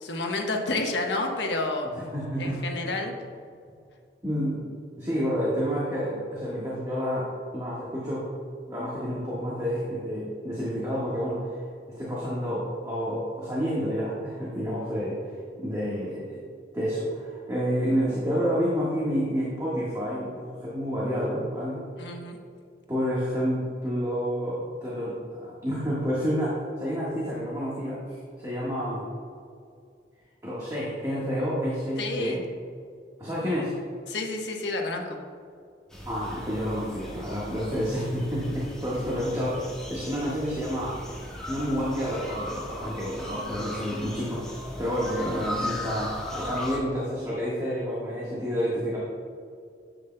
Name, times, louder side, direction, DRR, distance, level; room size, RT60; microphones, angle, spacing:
voice 1, 0.0-1.9 2.4-3.1 22.0-22.4 32.0-32.4 34.1-35.2 45.2-45.4, left 2 dB, 85° left, 2 dB, 1.1 m, -30 dB
voice 2, 2.0-2.6 4.2-7.3 7.5-8.2 8.7-11.5 12.0-15.1 15.6-16.4 16.7-21.8 22.9-29.1 30.4-32.4 33.2-33.7 36.1-39.6 39.9-41.0 41.5-44.4 44.8-49.0, equal, 20° right, -8 dB, 1.5 m, -29 dB
sound 1, 35.9-46.8, left 1 dB, 5° left, 1.4 m, -37 dB
11.0 x 8.3 x 2.2 m, 2.3 s
head